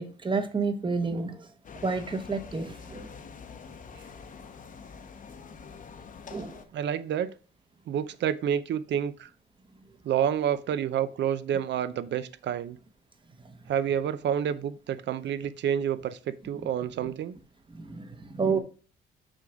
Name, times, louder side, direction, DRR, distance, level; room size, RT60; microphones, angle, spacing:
voice 1, 0.0-1.4 1.8-3.1 6.3-6.6 17.7-18.6, right 4 dB, 25° right, 1.0 m, -30 dB
sound 1, 1.6-6.6, left 5 dB, 40° left, 0.8 m, -45 dB
voice 2, 6.7-7.3 7.9-9.3 10.0-12.8 13.7-17.3, right 9 dB, 65° right, 0.6 m, -29 dB
6.3 x 4.0 x 4.7 m
cardioid pair, 90°, 20 cm